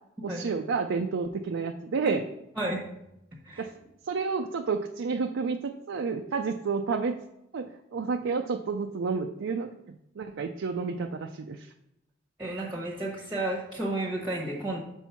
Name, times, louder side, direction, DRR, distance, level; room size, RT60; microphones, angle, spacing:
voice 1, 0.2-2.2 3.6-3.7 4.1-7.2 7.5-9.7 10.2-11.7, right 4 dB, 70° right, 4 dB, 0.4 m, -30 dB
voice 2, 12.4-14.8, right 1 dB, 10° right, -2 dB, 1.0 m, -32 dB
6.1 x 4.5 x 5.7 m, 0.85 s
head